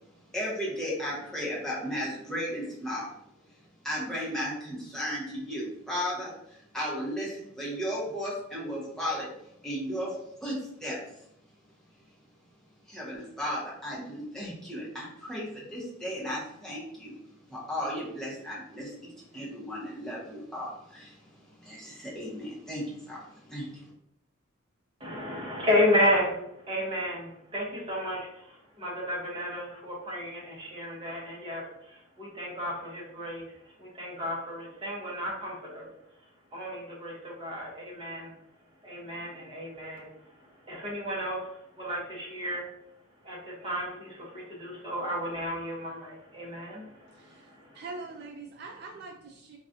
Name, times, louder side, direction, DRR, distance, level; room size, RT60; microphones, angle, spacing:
voice 1, 0.3-3.1 3.8-9.3 9.6-10.2 10.4-11.0 12.9-17.1 17.5-23.9, equal, 5° left, -7 dB, 0.9 m, -35 dB
voice 2, 25.0-35.9 36.5-38.3 38.8-42.6 43.2-47.8, left 1 dB, 25° right, -4 dB, 0.9 m, -32 dB
voice 3, 47.1-49.6, right 3 dB, 55° right, 2 dB, 0.4 m, -44 dB
3.9 x 2.3 x 2.6 m, 0.78 s
head